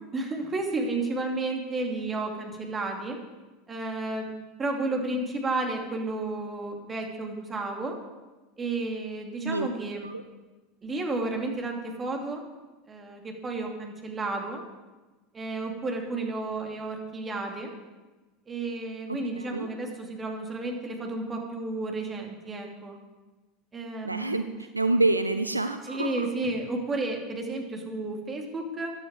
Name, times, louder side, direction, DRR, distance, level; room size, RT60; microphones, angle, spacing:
voice 1, 0.1-3.2 3.7-4.3 4.6-8.0 8.6-10.1 10.8-12.4 12.9-14.6 15.3-17.7 18.5-23.0 23.7-24.4 25.8-28.9, right 2 dB, 25° right, 2 dB, 2.7 m, -32 dB
voice 2, 19.1-19.7 24.0-26.3, right 2 dB, 90° right, 10 dB, 0.5 m, -27 dB
15.0 x 11.0 x 4.8 m, 1.2 s
figure-of-eight pair, 80°, 0 cm